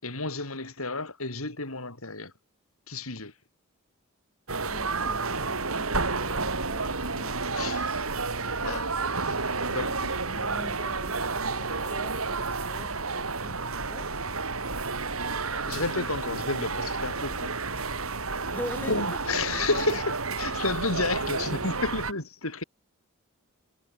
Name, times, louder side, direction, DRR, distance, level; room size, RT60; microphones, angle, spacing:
voice 1, 0.0-2.3 2.9-3.3 7.6-7.9 8.6-10.1 15.5-17.9 18.9-22.6, left 3 dB, 85° left, 6.9 m, -32 dB
sound 1, 4.5-22.1, right 4 dB, 85° right, 3.9 m, -30 dB
voice 2, 4.6-7.8 9.6-10.0 10.3-14.1 18.5-19.2, equal, 10° left, 5.6 m, -43 dB
head